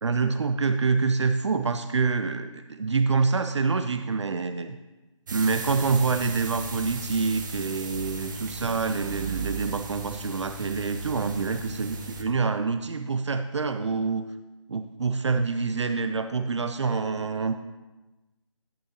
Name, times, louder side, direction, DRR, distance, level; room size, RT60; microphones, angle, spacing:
voice 1, 0.0-4.8 5.3-14.3 14.7-17.5, right 4 dB, 60° right, 8 dB, 0.5 m, -26 dB
sound 1, 5.3-12.2, right 3 dB, 35° right, 0.9 m, -36 dB
11.0 x 8.6 x 2.8 m, 1.1 s
figure-of-eight pair, 160°, 17 cm